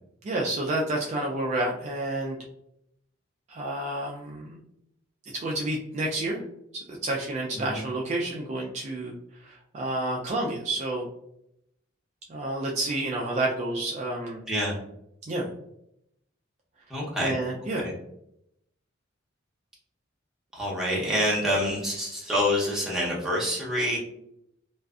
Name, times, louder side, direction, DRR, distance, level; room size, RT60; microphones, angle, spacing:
voice 1, 0.2-2.4 3.5-4.6 5.3-6.4 6.7-11.1 12.3-14.4 15.3-15.5 17.2-17.8, right 2 dB, 35° right, -2 dB, 0.3 m, -30 dB
voice 2, 16.9-17.4 17.8-17.9 20.5-24.0, equal, 5° right, -5 dB, 0.7 m, -27 dB
2.5 x 2.3 x 2.3 m, 0.77 s
head